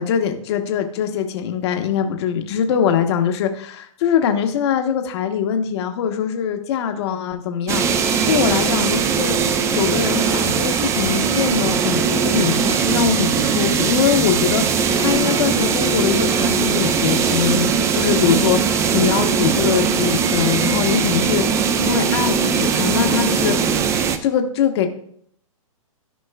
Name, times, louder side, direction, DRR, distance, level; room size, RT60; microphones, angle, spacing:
voice 1, 0.0-7.8 8.3-9.4 9.7-23.8 24.2-24.9, left 8 dB, 50° left, 5 dB, 1.0 m, -22 dB
sound 1, 7.7-24.2, right 6 dB, 15° right, 0.4 m, -20 dB
13.5 x 5.3 x 2.3 m, 0.66 s
hypercardioid pair, 130°, 18 cm